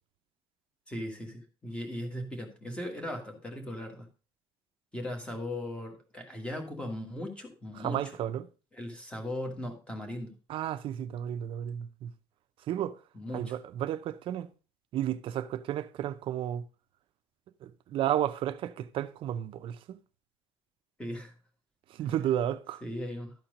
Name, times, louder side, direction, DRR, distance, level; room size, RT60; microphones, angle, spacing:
voice 1, 0.9-4.1 4.9-8.0 8.7-10.4 13.1-13.6 21.0-21.3 22.8-23.3, left 1 dB, 10° left, 1.7 m, -38 dB
voice 2, 7.8-8.5 10.5-12.1 12.7-13.0 13.3-14.5 14.9-16.6 17.6-20.0 21.9-22.8, right 11 dB, 50° right, 0.6 m, -32 dB
12.0 x 4.4 x 5.1 m
cardioid pair, 170°, 11 cm